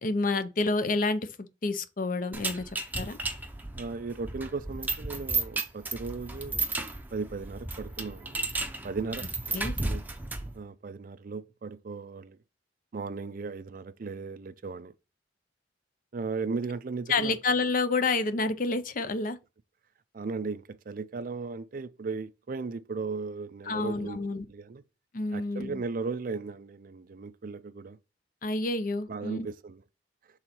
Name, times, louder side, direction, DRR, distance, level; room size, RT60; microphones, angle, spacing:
voice 1, 0.0-2.7 3.0-3.2 9.5-9.7 17.1-19.4 23.7-24.5 25.1-25.8 28.4-29.5, left 3 dB, 50° left, 0.6 m, -29 dB
sound 1, 2.3-10.6, right 3 dB, 10° right, 0.6 m, -34 dB
voice 2, 3.8-6.6 7.1-8.5 8.8-10.0 10.5-12.4 12.9-14.9 16.1-17.4 20.1-24.2 24.5-24.8 25.3-28.0 29.1-29.8, right 4 dB, 50° right, 0.4 m, -36 dB
6.3 x 3.8 x 4.3 m
head